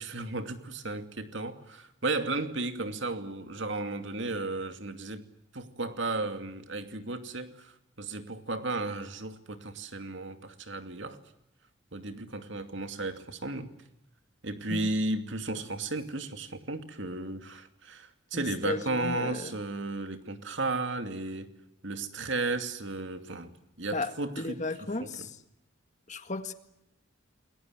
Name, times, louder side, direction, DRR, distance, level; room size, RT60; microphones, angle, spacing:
voice 1, 0.0-5.2 5.5-7.7 8.0-11.2 11.9-13.7 14.4-21.5 21.8-23.5 23.8-24.6, right 2 dB, 60° right, 8 dB, 2.5 m, -34 dB
voice 2, 18.3-19.6 23.9-25.4 26.1-26.5, left 2 dB, 35° left, 8 dB, 1.9 m, -35 dB
29.0 x 22.0 x 8.0 m, 0.86 s
head